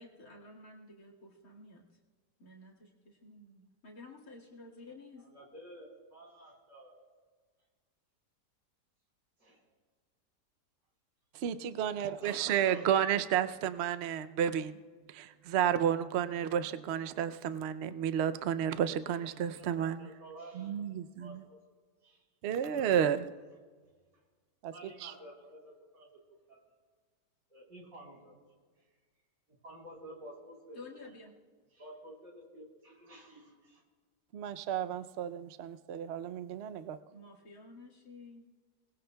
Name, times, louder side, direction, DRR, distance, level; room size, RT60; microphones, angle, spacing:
voice 1, 0.0-1.9 2.4-5.2 30.7-31.4 37.1-38.4, left 2 dB, 55° left, -3 dB, 2.5 m, -52 dB
voice 2, 5.2-7.0 9.4-9.6 12.2-12.9 19.0-19.2 19.6-20.9 21.2-21.6 22.0-22.2 22.6-23.1 24.7-26.1 26.5-26.6 27.5-28.4 29.5-30.9 31.7-33.8, right 1 dB, 55° right, -3 dB, 4.4 m, -51 dB
voice 3, 11.3-14.8 15.1-20.1 20.5-21.4 22.4-23.3 24.6-24.7 25.0-25.1 34.3-37.0, right 9 dB, 85° right, 11 dB, 0.5 m, -32 dB
28.0 x 19.5 x 2.3 m, 1.5 s
omnidirectional pair, 1.8 m